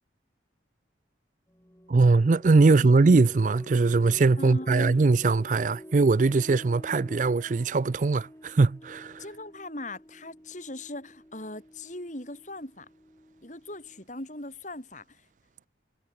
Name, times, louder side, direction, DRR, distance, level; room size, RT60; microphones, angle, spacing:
sound 1, 1.5-14.0, equal, 15° left, 2.6 m, -48 dB
voice 1, 1.9-9.2, right 3 dB, 40° right, 0.4 m, -21 dB
voice 2, 2.7-3.0 4.4-5.0 9.2-12.9 13.4-15.0, left 1 dB, 40° left, 5.2 m, -39 dB
head